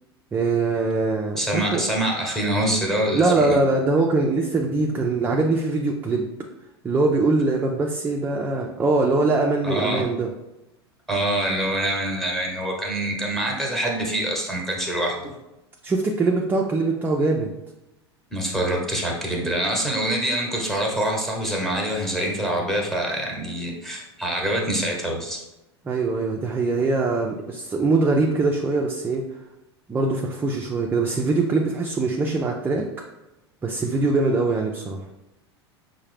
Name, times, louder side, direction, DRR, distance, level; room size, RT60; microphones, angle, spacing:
voice 1, 0.3-1.8 3.1-6.3 6.8-10.3 15.8-17.5 25.8-29.3 29.9-32.9 33.6-35.0, right 3 dB, 15° right, 1 dB, 0.4 m, -22 dB
voice 2, 1.3-3.6 9.6-10.0 11.1-15.3 18.3-25.4, right 1 dB, ahead, -1 dB, 1.0 m, -25 dB
5.4 x 2.1 x 3.3 m, 0.97 s
figure-of-eight pair, 85°, 14 cm